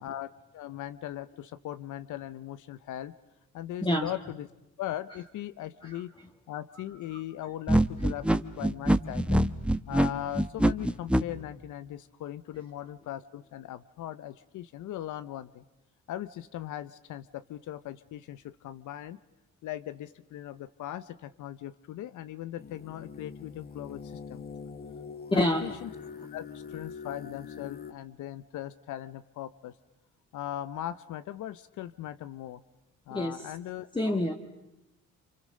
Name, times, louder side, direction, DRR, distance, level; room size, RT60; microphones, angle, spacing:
voice 1, 0.0-3.1 3.5-4.5 4.8-6.1 6.5-9.4 9.9-15.6 16.1-19.2 19.6-24.4 25.3-25.9 26.3-29.8 30.3-32.6 33.1-34.2, left 12 dB, 80° left, 14 dB, 0.8 m, -39 dB
sound 1, 7.7-11.2, right 1 dB, 5° right, 1.1 m, -24 dB
sound 2, 22.6-27.9, left 6 dB, 30° left, 1.0 m, -44 dB
voice 2, 25.3-25.8 33.1-33.4 33.9-34.3, left 1 dB, 15° left, 3 dB, 1.8 m, -27 dB
29.0 x 27.0 x 6.5 m, 0.96 s
cardioid pair, 90°, 30 cm